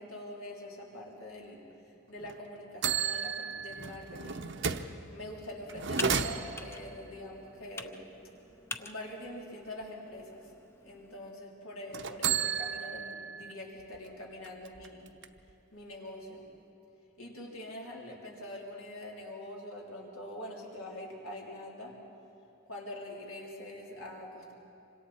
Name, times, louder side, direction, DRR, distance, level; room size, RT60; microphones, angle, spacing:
voice 1, 0.0-4.5 5.1-8.1 8.8-10.5 10.8-15.1 15.7-16.4 17.2-22.0 22.7-24.5, left 1 dB, 85° left, -2 dB, 3.6 m, -44 dB
sound 1, 2.2-2.3 2.8-5.0 5.7-6.8 11.9-13.5 13.9-14.0 14.4-15.5, right 7 dB, 60° right, 0.8 m, -33 dB
Computer keyboard, 4.6-11.3, left 2 dB, 10° left, 0.6 m, -46 dB
26.5 x 25.5 x 4.4 m, 2.8 s
head